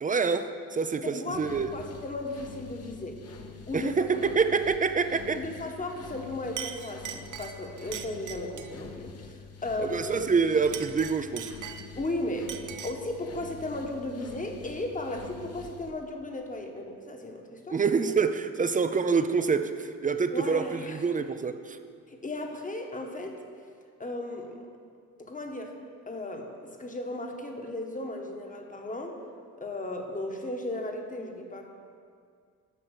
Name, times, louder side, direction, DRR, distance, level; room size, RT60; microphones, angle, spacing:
voice 1, 0.0-1.7 3.7-5.4 9.8-11.5 17.7-21.8, right 5 dB, 25° right, 10 dB, 0.5 m, -26 dB
voice 2, 1.0-1.5 1.7-3.2 3.7-3.9 5.3-10.0 12.0-12.6 12.8-17.8 20.3-21.0 22.1-23.4 24.0-24.6 25.2-25.8 26.1-29.2 29.6-31.7, left 2 dB, 25° left, 3 dB, 1.3 m, -35 dB
sound 1, 1.3-15.9, left 5 dB, 45° left, 0.9 m, -46 dB
Chink clink, 6.1-6.2 6.6-8.8 10.5-12.1 12.5-13.1, right 9 dB, 60° right, 0.7 m, -40 dB
10.0 x 6.1 x 6.4 m, 2.2 s
cardioid pair, 95°, 34 cm